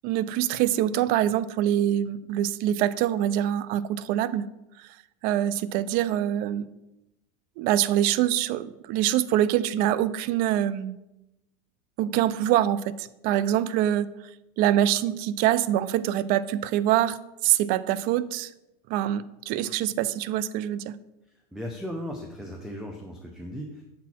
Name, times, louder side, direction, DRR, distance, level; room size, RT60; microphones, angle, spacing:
voice 1, 0.0-4.5 5.2-6.7 7.6-11.0 12.0-14.1 14.6-18.5 18.9-21.0, right 12 dB, 55° right, 17 dB, 0.4 m, -24 dB
voice 2, 21.5-23.8, equal, ahead, 2 dB, 0.6 m, -36 dB
7.0 x 4.2 x 4.3 m, 0.93 s
supercardioid pair, 125°, 18 cm